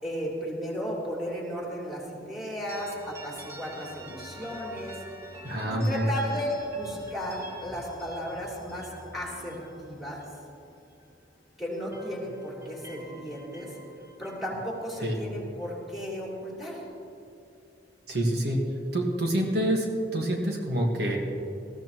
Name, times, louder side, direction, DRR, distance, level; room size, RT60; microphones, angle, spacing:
voice 1, 0.0-5.0 5.7-10.2 11.6-13.7 14.2-16.8, equal, ahead, -4 dB, 3.4 m, -35 dB
sound 1, 2.7-11.4 11.7-15.8, equal, 15° right, 1.5 m, -47 dB
voice 2, 5.4-6.1 15.0-15.1 18.1-18.7 18.9-21.2, right 1 dB, 65° right, 0 dB, 1.7 m, -27 dB
20.5 x 14.5 x 3.0 m, 2.8 s
head